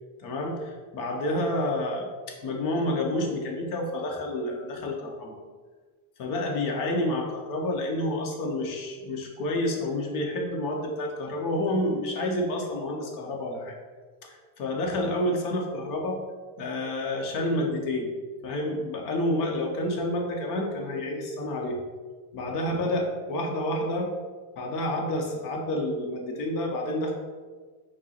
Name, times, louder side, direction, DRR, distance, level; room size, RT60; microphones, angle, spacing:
voice 1, 0.2-2.0 2.4-5.4 6.2-13.7 14.2-16.2 16.6-18.1 18.4-21.8 22.3-24.1 24.6-27.1, left 1 dB, 45° left, 0 dB, 0.8 m, -29 dB
5.0 x 2.1 x 4.2 m, 1.4 s
cardioid pair, 155°, 47 cm